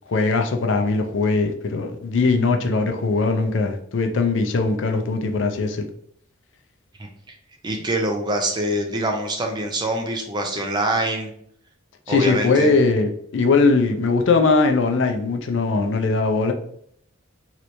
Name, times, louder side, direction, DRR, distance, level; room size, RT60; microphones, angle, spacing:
voice 1, 0.1-5.9 12.1-16.5, left 3 dB, 60° left, 0.4 m, -20 dB
voice 2, 7.6-11.3 12.1-12.7, right 1 dB, 20° right, 0.5 m, -24 dB
3.2 x 2.9 x 2.6 m
head